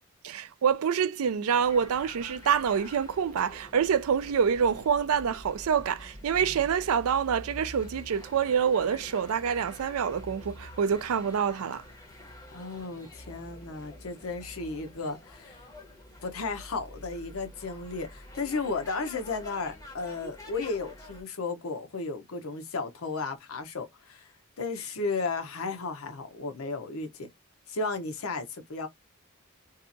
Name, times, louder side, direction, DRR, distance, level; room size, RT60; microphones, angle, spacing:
voice 1, 0.2-11.8, right 7 dB, 75° right, 0.4 m, -26 dB
sound 1, 1.6-21.2, left 1 dB, 15° left, 0.7 m, -47 dB
voice 2, 12.5-15.6 16.2-24.3 24.6-27.3 27.7-28.9, left 3 dB, 70° left, 0.7 m, -34 dB
2.7 x 2.4 x 2.4 m
head